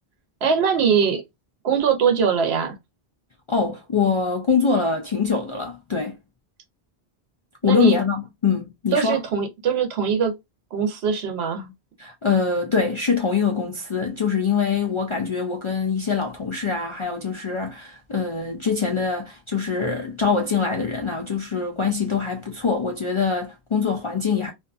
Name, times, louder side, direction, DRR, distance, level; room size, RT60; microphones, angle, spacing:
voice 1, 0.4-1.2 1.6-2.8 7.6-8.0 8.9-10.3 10.7-11.7, right 6 dB, 80° right, 0.9 m, -21 dB
voice 2, 3.5-6.2 7.6-9.2 12.0-24.5, left 5 dB, 55° left, 0.3 m, -23 dB
2.6 x 2.3 x 2.4 m
omnidirectional pair, 1.1 m